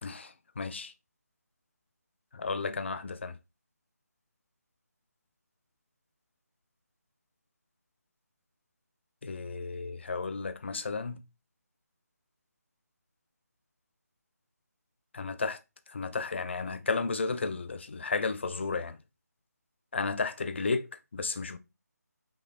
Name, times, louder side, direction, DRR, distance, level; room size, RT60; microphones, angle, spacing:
voice 1, 0.0-0.9 2.3-3.4 9.2-11.2 15.1-15.6 15.9-19.0 19.9-21.6, left 4 dB, 40° left, 0.4 m, -33 dB
5.0 x 3.1 x 2.4 m
figure-of-eight pair, 155°, 9 cm